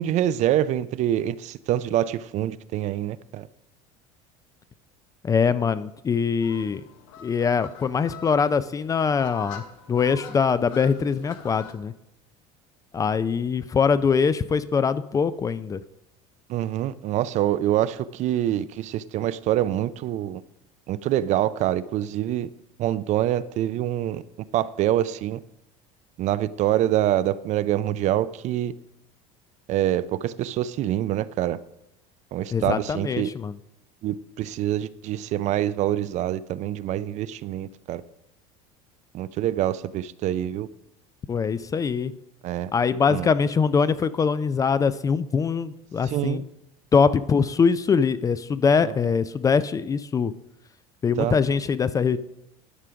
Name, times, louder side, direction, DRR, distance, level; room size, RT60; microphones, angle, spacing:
voice 1, 0.0-3.5 16.5-20.4 20.9-22.5 22.8-24.2 24.5-25.4 26.2-28.7 29.7-31.6 32.3-33.3 34.0-38.0 39.1-40.7 42.4-42.7 43.1-43.3 46.1-46.4 48.8-49.0 51.2-51.4, right 12 dB, 45° right, 0.4 m, -25 dB
voice 2, 5.2-6.8 7.2-9.6 9.9-11.9 12.9-15.8 32.5-33.6 41.3-42.1 42.7-46.4 46.9-50.3 51.0-52.2, left 6 dB, 20° left, 0.3 m, -23 dB
sound 1, 6.4-11.7, left 7 dB, 90° left, 1.1 m, -43 dB
11.0 x 5.0 x 5.7 m
supercardioid pair, 120°, 16 cm